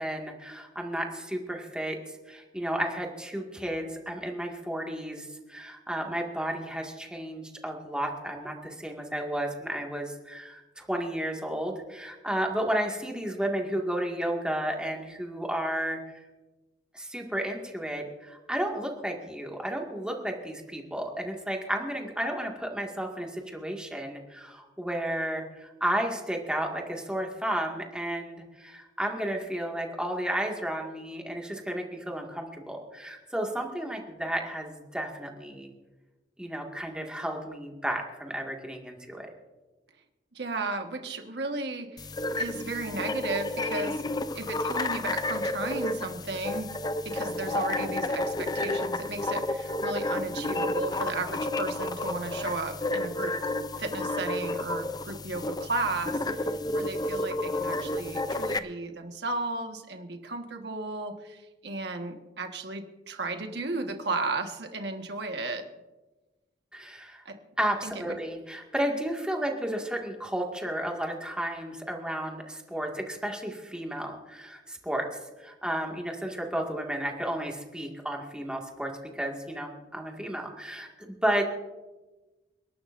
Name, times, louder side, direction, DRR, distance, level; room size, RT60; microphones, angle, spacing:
voice 1, 0.0-16.2 16.9-35.7 36.4-39.3 66.7-67.2 67.6-75.1 75.4-81.4, right 1 dB, 5° right, 0 dB, 2.0 m, -32 dB
voice 2, 40.3-44.0 44.3-46.7 47.0-53.3 53.8-65.7 67.2-67.4 67.8-68.2, right 3 dB, 65° right, 5 dB, 1.5 m, -34 dB
sound 1, 42.0-58.6, left 2 dB, 20° left, 0.5 m, -31 dB
29.5 x 12.0 x 2.6 m, 1.1 s
head